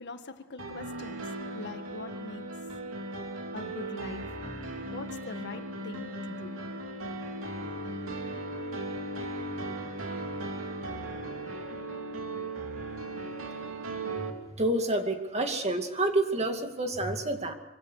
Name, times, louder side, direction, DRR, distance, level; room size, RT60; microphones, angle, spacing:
voice 1, 0.0-2.8 3.5-4.2 4.9-6.6, left 2 dB, 55° left, 1.7 m, -43 dB
sound 1, 0.6-14.3, right 2 dB, 75° right, 3.2 m, -37 dB
voice 2, 14.6-17.5, right 1 dB, 30° right, 2.5 m, -28 dB
25.5 x 23.5 x 6.4 m
head